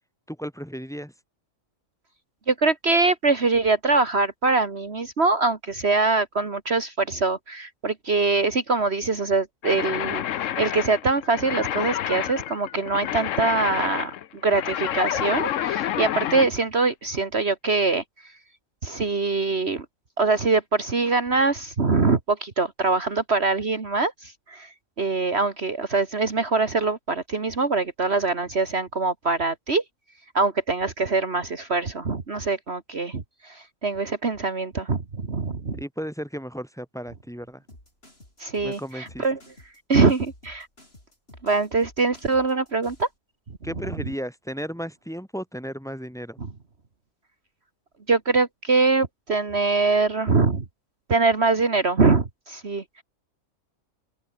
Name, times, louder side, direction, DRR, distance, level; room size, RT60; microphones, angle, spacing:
voice 1, 0.3-1.1 35.8-37.6 38.6-39.3 43.6-46.4, equal, ahead, 6.0 m, -34 dB
voice 2, 2.5-14.1 14.4-18.3 18.8-19.9 20.2-24.7 25.0-29.8 30.3-35.8 38.4-39.4 39.9-40.7 41.4-43.1 48.1-50.6 51.1-53.0, right 3 dB, 50° right, 2.2 m, -23 dB
sound 1, 9.6-16.5, left 11 dB, 70° left, 1.1 m, -29 dB
sound 2, 37.7-43.1, left 1 dB, 50° left, 8.0 m, -50 dB
open air
omnidirectional pair, 1.4 m